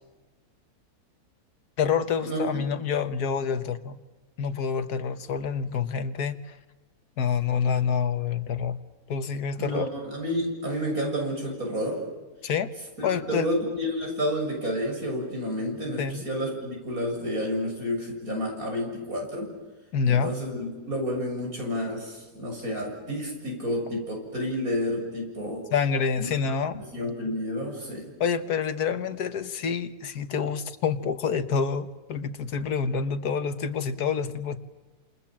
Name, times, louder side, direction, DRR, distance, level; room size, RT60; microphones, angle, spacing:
voice 1, 1.8-4.0 4.4-6.6 7.2-8.8 9.1-9.9 12.4-12.7 13.0-13.5 16.0-16.2 19.9-20.3 25.7-26.8 28.2-34.6, left 6 dB, 90° left, 1.7 m, -27 dB
voice 2, 9.6-12.0 13.0-19.5 20.1-25.7 26.2-26.3 26.9-28.1, equal, 65° right, 7.7 m, -30 dB
28.5 x 28.0 x 7.4 m
omnidirectional pair, 1.6 m